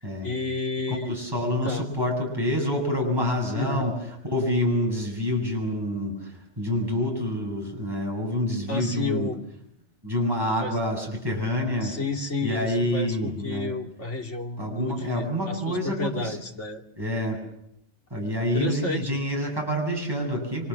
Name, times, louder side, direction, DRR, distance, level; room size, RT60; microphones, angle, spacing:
voice 1, 0.2-1.2 1.5-1.9 3.5-3.9 8.7-9.4 10.6-10.8 11.8-16.8 18.5-19.2, left 2 dB, 80° left, 3 dB, 3.0 m, -31 dB
voice 2, 1.1-3.9 4.2-9.3 10.0-11.9 12.4-13.7 14.6-16.4 17.0-17.4 18.1-20.7, left 1 dB, 20° right, 0 dB, 7.9 m, -27 dB
29.5 x 25.5 x 7.3 m, 0.76 s
omnidirectional pair, 1.2 m